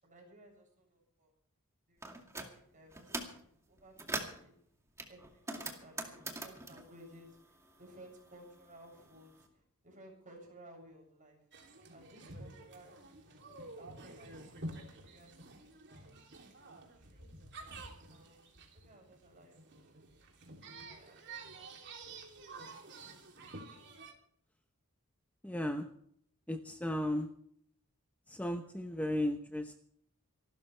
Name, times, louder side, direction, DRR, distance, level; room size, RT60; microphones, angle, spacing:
voice 1, 0.0-1.3 1.9-4.5 5.1-9.5 9.8-11.4 11.9-13.4 13.8-14.5 14.8-15.5 15.9-16.2 16.8-17.3 18.1-20.3 20.8-21.7, right 1 dB, 35° right, 1 dB, 7.3 m, -58 dB
sound 1, 2.0-2.5 2.9-3.4 3.8-4.4 5.0-7.9 8.2-9.3, right 2 dB, 15° right, 2.2 m, -42 dB
sound 2, 11.5-24.1, right 2 dB, 55° right, 3.1 m, -50 dB
voice 2, 25.4-25.9 26.5-27.3 28.4-29.8, left 1 dB, 5° left, 5 dB, 0.9 m, -35 dB
26.0 x 13.0 x 3.4 m, 0.66 s
head